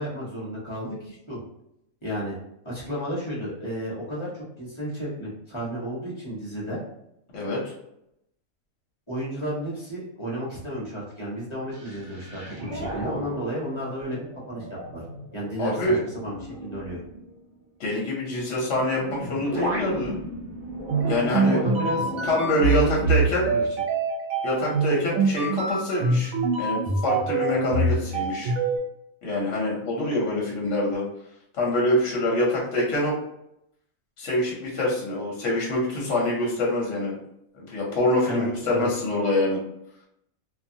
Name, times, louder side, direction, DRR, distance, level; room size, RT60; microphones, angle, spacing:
voice 1, 0.0-1.4 2.0-2.4 2.6-6.8 9.1-14.2 14.5-14.7 14.9-15.0 15.3-17.0 18.3-18.4 21.4-22.1 22.7-23.6 38.2-38.9, equal, 25° left, -6 dB, 0.9 m, -32 dB
voice 2, 7.3-7.7 15.6-16.0 17.8-20.2 21.1-21.6 22.3-23.5 24.4-28.5 29.2-31.0 31.5-33.1 34.2-37.1 37.5-39.6, left 1 dB, 60° left, -3 dB, 1.0 m, -25 dB
sound 1, 11.7-17.5 18.4-23.0, equal, 50° right, 0.7 m, -36 dB
sound 2, 20.9-28.8, right 4 dB, 80° right, 1.1 m, -25 dB
2.5 x 2.4 x 2.6 m, 0.78 s
omnidirectional pair, 1.4 m